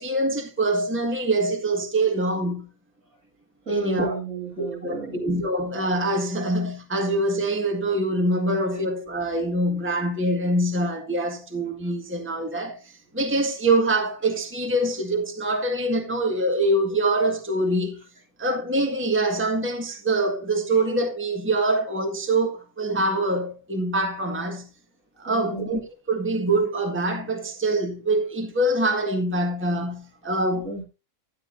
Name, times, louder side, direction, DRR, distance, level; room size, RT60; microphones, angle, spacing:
voice 1, 0.0-2.7 3.7-4.1 4.6-18.0 18.4-24.7 25.2-25.8 26.1-30.7, right 1 dB, 10° right, 1.7 m, -24 dB
voice 2, 3.7-5.2 25.3-25.7 30.6-30.9, right 2 dB, 70° right, 7.4 m, -32 dB
13.0 x 10.5 x 2.7 m
omnidirectional pair, 1.5 m